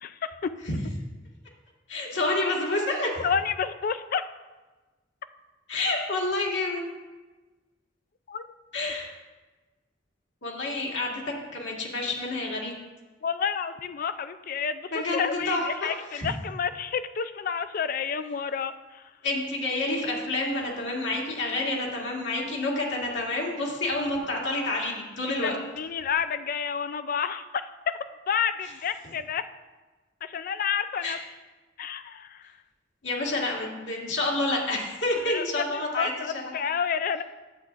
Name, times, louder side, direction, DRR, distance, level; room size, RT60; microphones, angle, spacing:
voice 1, 0.0-0.5 3.2-4.2 8.3-8.5 13.2-19.1 25.4-28.0 28.3-29.4 30.2-31.2 31.8-32.5 35.2-37.2, left 7 dB, 50° left, 11 dB, 0.4 m, -30 dB
voice 2, 1.9-3.2 5.7-6.8 8.7-9.1 10.4-12.7 14.9-16.3 19.2-25.5 31.0-31.2 33.0-36.1, left 2 dB, 70° left, -2 dB, 1.9 m, -29 dB
10.0 x 8.3 x 2.5 m, 1.2 s
head